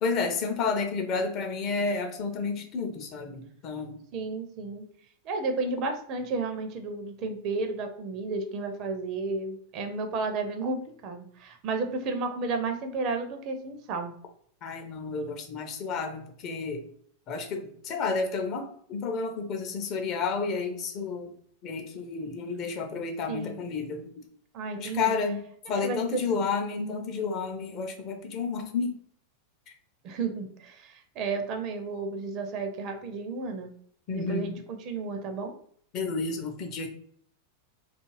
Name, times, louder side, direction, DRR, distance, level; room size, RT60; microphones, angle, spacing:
voice 1, 0.0-4.0 14.6-16.9 17.3-21.3 21.6-24.1 24.8-29.0 34.1-34.6 35.9-36.9, left 4 dB, 35° left, 5 dB, 0.5 m, -31 dB
voice 2, 4.1-4.8 5.2-14.1 23.3-23.6 24.5-25.1 25.7-26.4 30.0-33.7 34.1-35.5, right 3 dB, 40° right, 6 dB, 0.4 m, -32 dB
2.4 x 2.4 x 3.0 m, 0.62 s
figure-of-eight pair, 90°, 0 cm